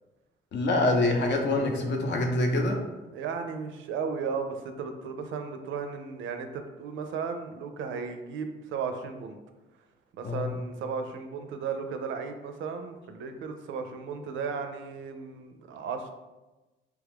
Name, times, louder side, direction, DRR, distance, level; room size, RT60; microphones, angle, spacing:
voice 1, 0.5-2.8 10.2-10.6, left 2 dB, 60° left, 2 dB, 0.7 m, -25 dB
voice 2, 3.1-9.4 10.1-16.1, right 5 dB, 75° right, 7 dB, 0.4 m, -35 dB
3.0 x 2.3 x 3.4 m, 1.1 s
cardioid pair, 90°, 20 cm